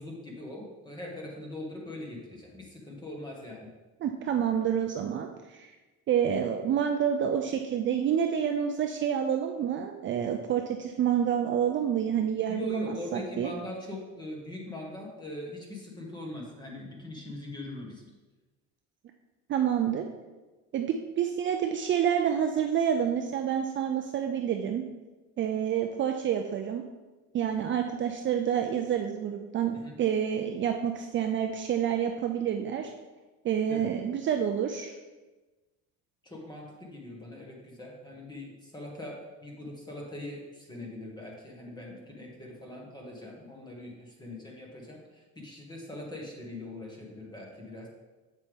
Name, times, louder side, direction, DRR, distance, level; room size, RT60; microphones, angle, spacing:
voice 1, 0.0-3.7 12.5-18.1 29.7-29.9 33.7-33.9 36.2-47.9, left 1 dB, 15° left, -1 dB, 1.6 m, -41 dB
voice 2, 4.0-5.7 6.1-13.5 19.5-20.0 20.7-24.8 25.4-26.8 27.3-32.9 33.4-34.9, right 8 dB, 40° right, 4 dB, 0.5 m, -28 dB
7.9 x 7.1 x 3.5 m, 1.2 s
cardioid pair, 155°, 31 cm